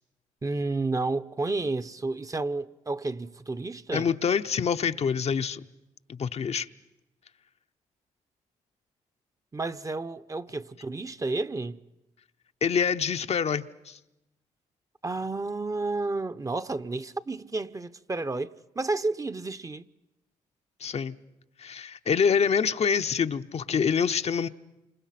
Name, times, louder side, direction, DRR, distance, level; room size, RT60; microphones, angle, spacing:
voice 1, 0.4-4.1 9.5-11.8 15.0-19.8, right 3 dB, 25° right, 0.8 m, -31 dB
voice 2, 3.9-5.6 6.1-6.7 12.6-14.0 20.8-21.1 21.6-24.5, left 6 dB, 50° left, 0.8 m, -26 dB
28.5 x 26.5 x 5.9 m
cardioid pair, 65°, 13 cm